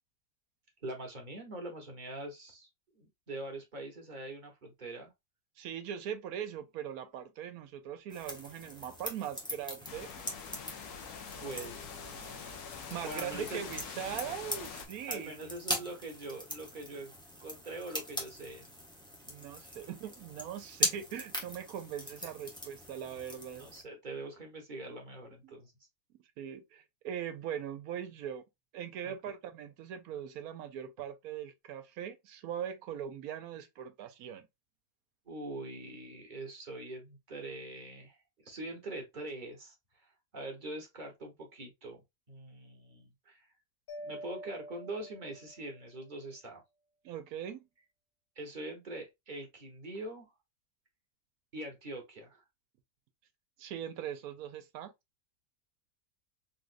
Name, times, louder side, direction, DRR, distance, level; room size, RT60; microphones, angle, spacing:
voice 1, 0.8-2.7 3.0-5.1 11.4-12.4 13.0-13.7 15.1-17.1 17.4-18.7 23.6-25.7 29.0-29.1 35.3-38.2 38.4-39.7 40.0-42.0 42.3-43.5 44.0-46.6 48.4-50.3 51.5-52.4, right 2 dB, 35° right, 1.0 m, -43 dB
voice 2, 5.6-10.1 12.9-15.3 19.3-23.7 25.4-25.5 26.4-28.4 28.7-34.5 47.0-47.6 53.6-54.9, right 9 dB, 70° right, 1.1 m, -41 dB
sound 1, 8.1-23.8, equal, 5° left, 0.6 m, -41 dB
sound 2, 9.9-14.9, left 6 dB, 75° left, 1.2 m, -44 dB
Mallet percussion, 43.9-45.9, right 1 dB, 50° left, 0.7 m, -46 dB
4.0 x 2.4 x 2.5 m
omnidirectional pair, 1.7 m